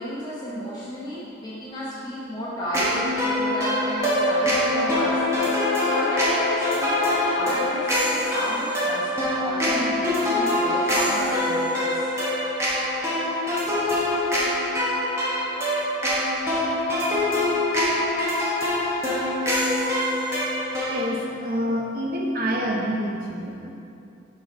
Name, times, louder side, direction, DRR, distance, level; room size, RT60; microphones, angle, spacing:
voice 1, 0.0-12.1, equal, 20° left, -9 dB, 0.8 m, -33 dB
sound 1, 2.7-21.1, left 1 dB, 15° right, 1.0 m, -24 dB
sound 2, 4.0-16.7 17.0-17.2 17.7-17.8, left 5 dB, 85° left, 0.4 m, -34 dB
voice 2, 20.9-23.7, equal, 50° right, -2 dB, 0.9 m, -27 dB
6.2 x 4.5 x 4.6 m, 2.7 s
head